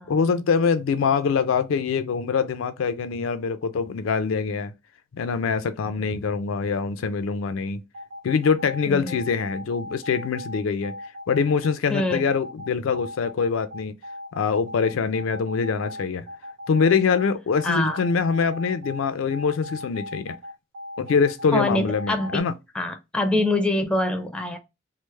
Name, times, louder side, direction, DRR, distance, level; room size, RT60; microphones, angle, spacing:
voice 1, 0.1-4.7 5.1-7.8 8.2-10.9 11.3-14.0 14.3-16.3 16.7-20.3 21.0-22.5, left 5 dB, 70° left, 0.4 m, -24 dB
sound 1, 7.9-22.4, left 1 dB, 85° right, 0.8 m, -38 dB
voice 2, 11.9-12.2 17.6-18.0 21.5-22.4 22.7-24.6, left 1 dB, 5° left, 0.5 m, -24 dB
3.2 x 2.0 x 3.1 m
head